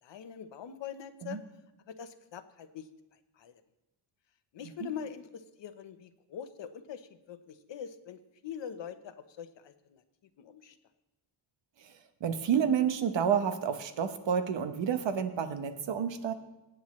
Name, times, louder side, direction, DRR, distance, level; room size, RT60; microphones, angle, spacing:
voice 1, 0.0-1.4 1.9-2.9 3.4-3.5 4.5-10.0 10.4-10.8, left 8 dB, 70° left, 10 dB, 1.0 m, -43 dB
voice 2, 12.2-16.3, right 7 dB, 70° right, 8 dB, 1.1 m, -29 dB
24.5 x 9.0 x 3.2 m, 0.98 s
wide cardioid pair, 155°, 46 cm